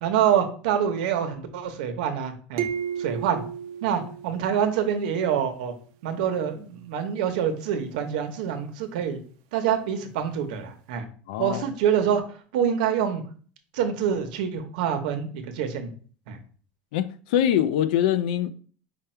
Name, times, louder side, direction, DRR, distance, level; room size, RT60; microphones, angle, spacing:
voice 1, 0.0-2.7 3.0-3.4 3.8-5.7 6.0-9.2 9.5-11.1 11.4-12.2 12.5-13.2 13.7-15.9 16.3-16.4, right 8 dB, 90° right, 0.8 m, -26 dB
sound 1, 2.6-5.1, right 8 dB, 65° right, 0.6 m, -33 dB
voice 2, 11.3-11.6 16.9-18.5, left 10 dB, 90° left, 0.4 m, -23 dB
5.2 x 2.3 x 4.3 m
cardioid pair, 160°, 4 cm